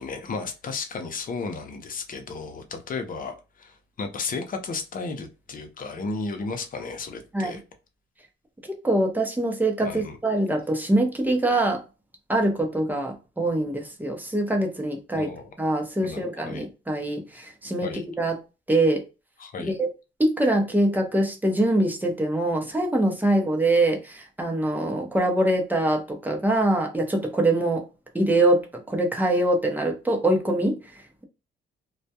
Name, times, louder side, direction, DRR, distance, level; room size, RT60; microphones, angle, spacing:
voice 1, 0.0-7.6 9.8-10.2 15.2-15.5 16.0-16.7 17.8-18.0 19.4-19.8, left 4 dB, 45° left, 0.7 m, -34 dB
voice 2, 8.7-11.8 12.3-15.3 15.6-18.4 18.7-19.0 19.6-19.9 20.2-27.8 28.1-31.2, right 1 dB, 10° right, 0.7 m, -24 dB
2.2 x 2.1 x 2.7 m
cardioid pair, 90°, 20 cm